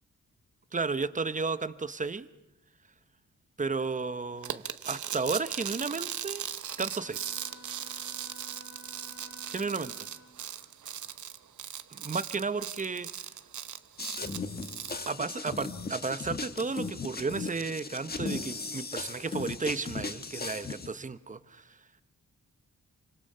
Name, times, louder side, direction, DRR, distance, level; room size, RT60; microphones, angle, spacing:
voice 1, 0.7-2.3 3.6-6.4 6.8-7.3 9.5-9.9 11.9-13.1 15.1-21.8, right 4 dB, 25° right, 13 dB, 0.9 m, -33 dB
sound 1, 4.4-15.1, right 9 dB, 80° right, 1.0 m, -38 dB
Bowed string instrument, 6.9-10.5, left 1 dB, 75° left, 2.7 m, -53 dB
sound 2, 14.0-20.9, left 4 dB, 30° left, 1.4 m, -37 dB
28.0 x 26.0 x 5.6 m, 0.91 s
wide cardioid pair, 115°, 29 cm